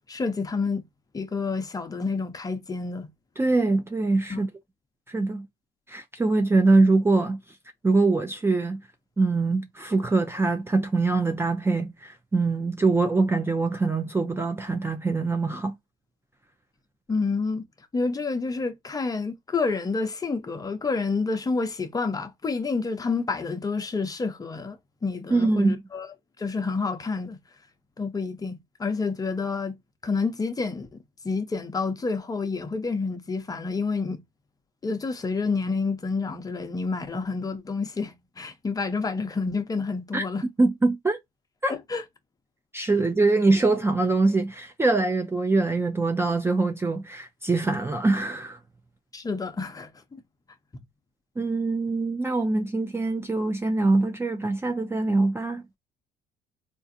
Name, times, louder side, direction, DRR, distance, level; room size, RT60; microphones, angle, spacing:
voice 1, 0.1-0.9 1.1-3.1 4.3-4.4 17.1-17.6 17.9-24.8 25.0-26.1 26.4-27.4 28.0-29.8 30.0-34.2 34.8-40.5 41.7-42.0 49.1-50.2, left 4 dB, 20° left, 0.7 m, -29 dB
voice 2, 3.4-4.5 5.1-5.5 5.9-7.4 7.8-8.8 9.2-15.7 25.3-25.8 40.1-40.2 40.6-41.2 41.6-41.7 42.7-48.6 51.4-55.6, right 3 dB, 15° right, 0.5 m, -23 dB
3.6 x 2.5 x 2.6 m
cardioid pair, 110°, 17 cm